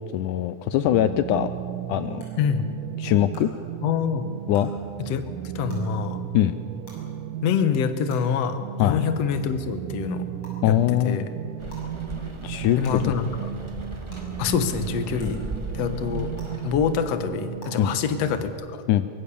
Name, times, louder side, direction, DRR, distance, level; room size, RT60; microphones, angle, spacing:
voice 1, 0.1-1.5 1.9-2.2 3.0-3.5 4.5-4.7 6.3-6.6 8.8-9.0 10.6-11.3 12.4-13.1 15.2-15.5 17.8-17.9 18.9-19.1, left 12 dB, 80° left, 12 dB, 2.2 m, -22 dB
sound 1, 0.9-18.5, right 11 dB, 80° right, 2.3 m, -35 dB
sound 2, 1.0-1.1 2.2-2.3 3.3-3.4 4.5-4.6 5.7-5.8 6.9-7.0 8.1-8.2 9.3-9.4 10.4-10.5 11.7-11.8 12.8-12.9 14.1-14.2 15.2-15.3 16.4-16.5 17.6-17.7, left 2 dB, 40° left, 7.6 m, -47 dB
voice 2, 2.4-2.7 3.8-4.3 5.0-5.2 5.6-6.2 7.4-10.3 10.7-10.8 11.0-11.3 12.8-13.3 14.4-15.4 15.7-16.3 16.6-18.8, left 7 dB, 60° left, 10 dB, 2.1 m, -25 dB
Rain, 11.6-17.0, right 1 dB, 20° right, 0.8 m, -37 dB
23.5 x 22.5 x 7.0 m, 2.4 s
omnidirectional pair, 3.7 m